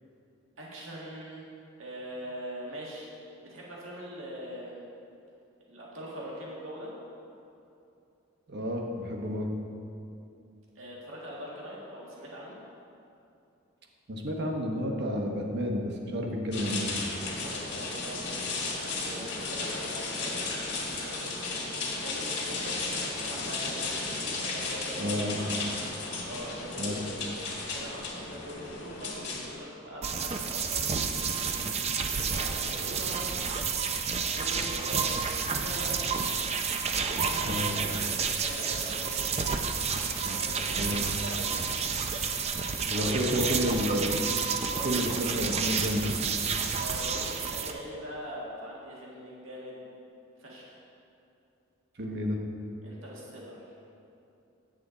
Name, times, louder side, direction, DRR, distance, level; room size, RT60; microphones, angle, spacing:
voice 1, 0.6-1.5 1.8-3.1 3.4-4.8 5.7-6.9 10.7-12.6 17.2-20.4 21.0-22.9 23.2-25.5 26.2-31.4 31.8-33.3 34.1-36.0 36.9-39.4 40.1-42.1 42.9-43.7 44.7-44.9 46.8-49.9 50.4-50.8 52.8-53.7, equal, 90° right, -4 dB, 1.7 m, -42 dB
voice 2, 8.5-9.5 14.1-16.9 25.0-25.4 26.8-27.0 37.4-37.7 40.8-41.1 42.9-44.2 44.8-46.1 52.0-52.4, equal, 60° right, 1 dB, 1.0 m, -30 dB
sound 1, 16.5-29.6, left 3 dB, 60° left, 1.7 m, -34 dB
sound 2, 30.0-47.7, right 5 dB, 35° right, 0.5 m, -30 dB
8.4 x 7.6 x 3.9 m, 2.7 s
head